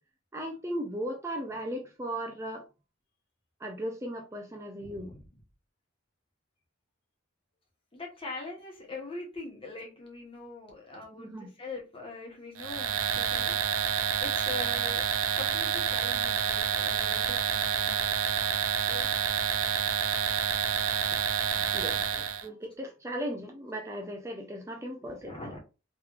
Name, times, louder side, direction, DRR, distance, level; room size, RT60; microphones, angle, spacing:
voice 1, 0.3-2.6 3.6-5.1 11.2-11.5 21.7-25.5, equal, 15° right, 0.4 m, -37 dB
voice 2, 4.8-5.3 7.9-15.0 15.4-18.1 18.8-19.1 20.8-21.2 25.0-25.6, left 2 dB, 30° left, 1.1 m, -43 dB
sound 1, 12.6-22.5, right 8 dB, 80° right, 0.4 m, -28 dB
3.2 x 3.0 x 2.4 m
head